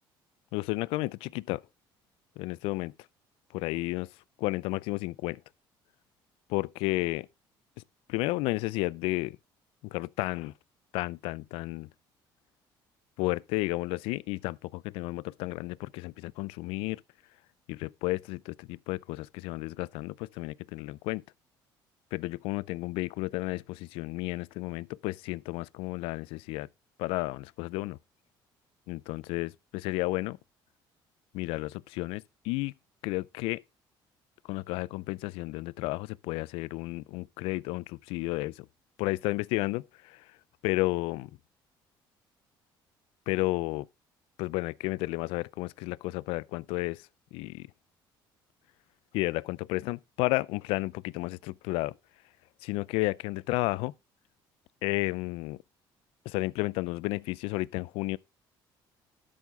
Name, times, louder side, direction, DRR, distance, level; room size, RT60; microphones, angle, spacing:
voice 1, 0.5-1.6 2.4-2.9 3.5-4.1 4.4-5.4 6.5-7.3 8.1-9.4 9.8-10.5 10.9-11.9 13.2-17.0 17.7-21.2 22.1-26.7 27.0-28.0 28.9-30.4 31.3-32.7 33.0-33.6 34.5-38.7 39.0-40.2 40.6-41.3 43.3-43.9 44.4-47.7 49.1-52.0 52.6-53.9 54.8-55.6 56.3-58.2, left 21 dB, 90° left, 0.4 m, -32 dB
12.0 x 6.4 x 3.5 m
cardioid pair, 105°, 9 cm